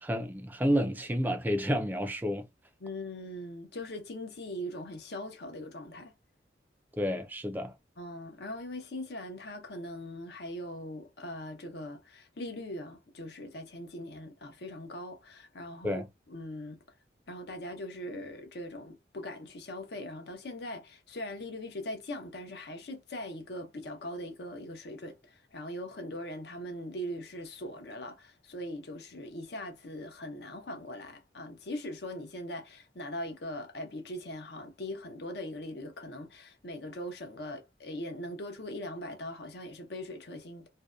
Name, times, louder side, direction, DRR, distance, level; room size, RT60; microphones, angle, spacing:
voice 1, 0.0-2.5 7.0-7.7 15.8-16.1, equal, 10° right, 0.3 m, -30 dB
voice 2, 2.8-6.1 8.0-16.8 17.3-40.7, left 1 dB, 65° left, 0.6 m, -41 dB
2.6 x 2.1 x 2.3 m
head